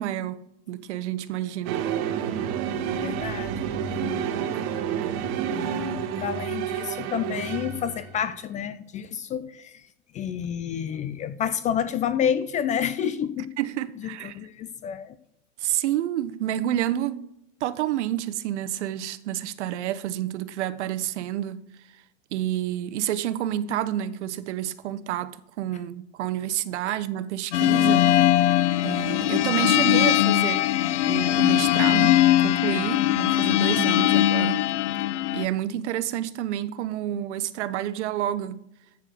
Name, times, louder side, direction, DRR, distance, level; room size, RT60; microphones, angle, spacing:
voice 1, 0.0-1.9 13.6-14.4 15.6-17.2 17.6-21.6 22.3-28.1 28.8-30.7 31.1-34.6 35.3-38.6, right 12 dB, 65° right, 0.9 m, -29 dB
sound 1, 1.7-8.2, right 8 dB, 45° right, 1.3 m, -29 dB
voice 2, 3.0-4.4 5.5-13.5 14.0-15.2, left 8 dB, 20° left, 0.3 m, -30 dB
sound 2, 27.5-35.5, left 13 dB, 70° left, 0.5 m, -21 dB
14.0 x 4.7 x 6.3 m
hypercardioid pair, 95°, 38 cm